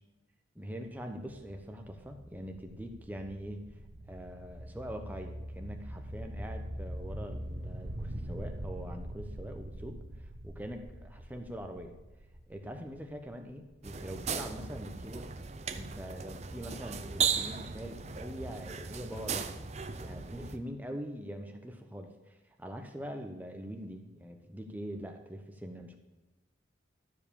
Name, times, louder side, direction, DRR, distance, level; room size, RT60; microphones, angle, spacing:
voice 1, 0.5-3.6 4.1-11.9 12.5-15.3 15.7-19.6 20.0-25.9, equal, 10° right, 4 dB, 0.9 m, -43 dB
sound 1, 1.3-14.5, right 1 dB, 65° right, 1.2 m, -43 dB
sound 2, 13.8-20.6, right 6 dB, 35° right, 0.5 m, -36 dB
12.5 x 4.9 x 7.1 m, 1.1 s
head